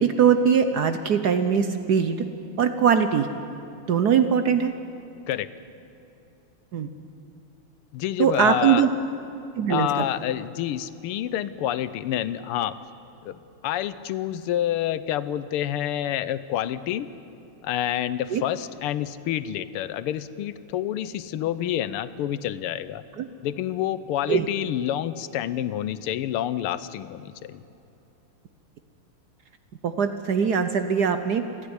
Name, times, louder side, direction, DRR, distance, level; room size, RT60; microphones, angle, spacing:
voice 1, 0.0-2.2 2.6-3.3 3.9-4.7 6.7-6.9 8.2-8.9 9.6-9.9 18.3-18.4 23.2-23.3 24.3-24.4 29.8-31.4, right 7 dB, 60° right, 8 dB, 1.1 m, -21 dB
voice 2, 7.9-8.9 9.7-12.8 13.2-17.1 17.6-23.0 23.4-27.6, left 11 dB, 85° left, 15 dB, 1.6 m, -28 dB
29.0 x 10.5 x 9.6 m, 2.9 s
omnidirectional pair, 2.4 m